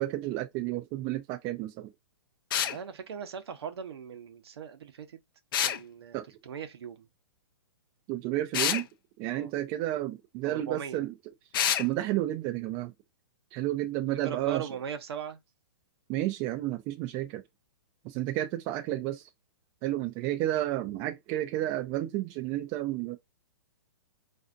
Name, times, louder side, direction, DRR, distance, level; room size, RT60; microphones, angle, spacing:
voice 1, 0.0-1.9 6.1-6.2 8.1-8.8 9.2-11.1 11.8-12.9 13.5-14.7 16.1-17.4 18.0-19.2 19.8-23.2, right 15 dB, 30° right, 0.4 m, -31 dB
sound 1, 2.5-2.8 5.5-5.8 8.5-8.8 11.5-11.9, left 10 dB, 55° left, 0.5 m, -27 dB
voice 2, 2.6-5.2 5.6-7.1 9.3-9.5 10.4-11.0 14.1-15.4, right 8 dB, 70° right, 0.9 m, -39 dB
4.1 x 2.5 x 2.5 m
hypercardioid pair, 130°, 14 cm